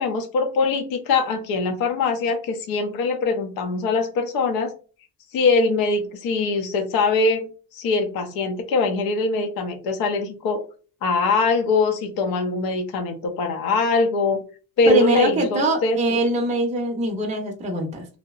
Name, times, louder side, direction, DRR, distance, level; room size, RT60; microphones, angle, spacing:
voice 1, 0.0-4.7 5.3-10.6 11.0-14.4 14.8-16.0, left 3 dB, 60° left, 5 dB, 0.6 m, -22 dB
voice 2, 14.9-18.0, right 2 dB, 15° right, 2 dB, 0.6 m, -22 dB
2.7 x 2.0 x 2.3 m, 0.37 s
cardioid pair, 120°, 40 cm